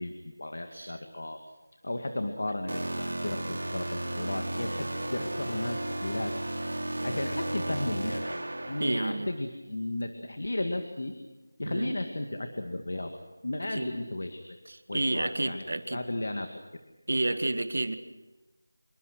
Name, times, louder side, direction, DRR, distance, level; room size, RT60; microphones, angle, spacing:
voice 1, 0.0-1.4 1.8-6.3 7.0-8.2 8.6-11.1 11.6-13.1 13.4-14.6 14.9-15.6 15.9-16.5, left 1 dB, 55° left, 6 dB, 2.2 m, -34 dB
sound 1, 2.7-9.2, right 1 dB, 75° right, 3.8 m, -34 dB
voice 2, 8.8-9.3 11.7-11.9 13.7-13.9 14.7-16.0 17.1-18.0, right 2 dB, 50° right, 10 dB, 1.8 m, -30 dB
26.0 x 22.5 x 6.3 m, 1.1 s
figure-of-eight pair, 180°, 0 cm